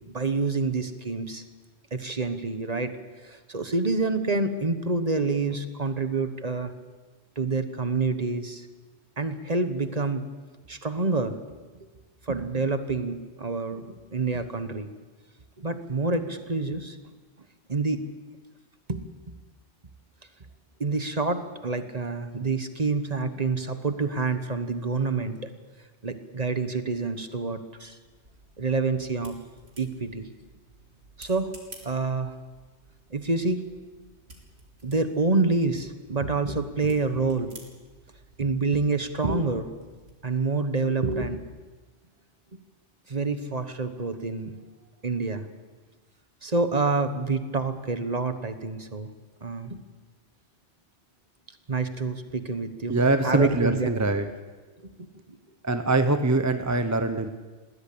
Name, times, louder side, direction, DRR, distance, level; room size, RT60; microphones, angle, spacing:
voice 1, 0.1-1.4 1.9-2.9 3.2-6.7 7.4-8.7 9.2-10.3 10.7-11.4 12.3-14.9 15.6-17.0 17.7-18.0 18.9-19.0 20.8-25.5 26.0-28.0 28.6-29.4 29.8-30.3 31.2-31.5 31.8-32.3 33.1-33.6 34.8-37.5 38.4-39.7 40.2-41.4 43.1-44.5 45.0-45.4 46.4-49.1 49.4-49.8 51.7-53.0 53.2-53.9 54.8-55.1, right 3 dB, 35° right, 9 dB, 1.3 m, -27 dB
sound 1, 27.5-40.2, right 2 dB, 70° right, 3.6 m, -53 dB
voice 2, 52.9-54.2 55.6-57.3, right 2 dB, 15° right, 8 dB, 0.8 m, -23 dB
20.5 x 16.5 x 8.5 m, 1.4 s
omnidirectional pair, 1.1 m